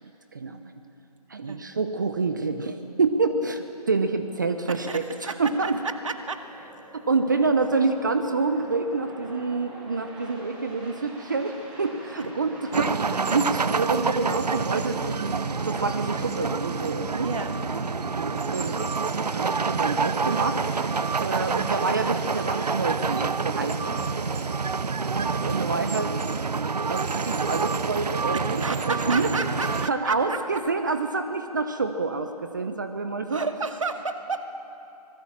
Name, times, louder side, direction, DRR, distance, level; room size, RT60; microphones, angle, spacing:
voice 1, 1.3-5.8 6.9-17.3 18.2-18.8 19.3-20.6 21.2-24.0 25.1-26.2 26.9-29.3 29.9-33.4, right 4 dB, 30° right, 8 dB, 0.8 m, -27 dB
voice 2, 4.8-5.3 5.6-5.7 6.0-6.4 17.2-17.6 28.4-30.6 33.3-34.4, right 4 dB, 50° right, 6 dB, 2.0 m, -32 dB
sound 1, 6.2-24.5, right 1 dB, 5° right, 1.4 m, -43 dB
sound 2, 12.7-29.9, right 4 dB, 80° right, 0.8 m, -27 dB
25.0 x 21.0 x 7.4 m, 2.9 s
figure-of-eight pair, 170°, 21 cm